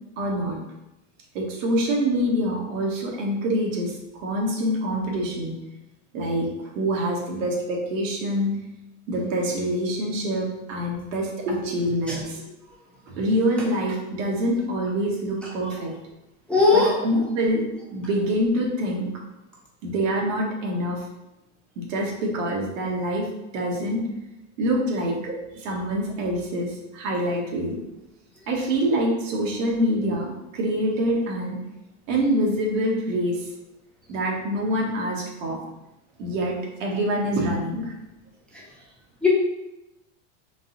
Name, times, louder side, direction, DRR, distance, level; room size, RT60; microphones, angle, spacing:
voice 1, 0.2-0.6 1.3-5.5 6.1-6.5 6.7-8.6 9.1-12.5 13.1-15.9 16.7-17.6 17.9-19.1 19.8-21.0 21.8-23.3 23.5-24.0 24.6-27.8 28.5-31.6 32.1-33.5 34.1-35.6 36.2-37.9, equal, 90° right, -1 dB, 1.3 m, -25 dB
voice 2, 16.5-17.2 39.2-39.3, left 3 dB, 5° left, -5 dB, 0.5 m, -19 dB
3.9 x 2.6 x 3.8 m, 0.95 s
supercardioid pair, 155°, 38 cm